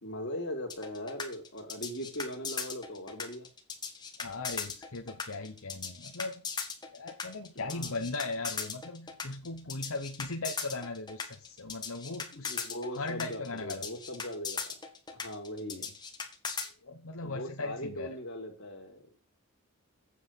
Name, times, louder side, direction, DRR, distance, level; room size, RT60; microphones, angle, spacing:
voice 1, 0.0-3.5 7.5-8.0 12.3-14.8 15.1-15.9 17.2-19.1, equal, 55° left, 2 dB, 3.1 m, -40 dB
sound 1, 0.7-16.7, left 5 dB, 20° left, 1.7 m, -38 dB
voice 2, 4.2-6.4 6.9-12.5 12.9-13.9 15.7-15.9 16.8-18.1, left 3 dB, 75° left, 4 dB, 1.1 m, -38 dB
8.7 x 7.9 x 5.4 m, 0.38 s
head